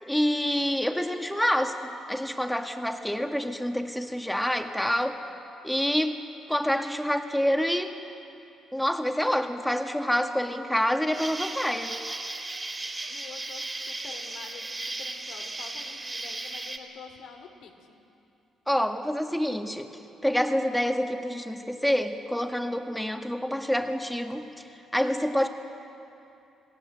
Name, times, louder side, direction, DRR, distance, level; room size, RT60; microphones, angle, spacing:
voice 1, 0.0-5.2 5.6-6.2 6.5-8.0 8.7-12.0 18.7-19.9 20.2-24.5 24.9-25.5, equal, 5° left, 5 dB, 1.7 m, -27 dB
Insect, 11.1-16.8, right 2 dB, 20° right, 2.8 m, -36 dB
voice 2, 13.1-17.9, left 6 dB, 85° left, 4 dB, 2.9 m, -47 dB
28.0 x 18.0 x 7.9 m, 2.8 s
cardioid pair, 90°, 0 cm